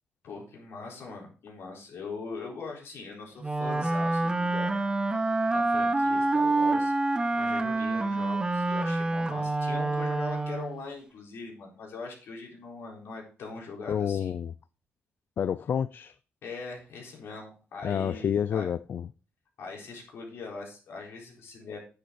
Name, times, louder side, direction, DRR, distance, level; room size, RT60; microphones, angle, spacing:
voice 1, 0.2-4.9 5.5-14.3 16.4-18.7 19.6-21.8, left 4 dB, 70° left, 4.1 m, -41 dB
Wind instrument woodwind instrument, 3.4-10.8, right 2 dB, 20° right, 0.9 m, -27 dB
voice 2, 13.9-14.5 15.4-16.2 17.8-19.1, left 8 dB, 55° left, 0.4 m, -29 dB
10.0 x 6.7 x 4.7 m
cardioid pair, 120°, 4 cm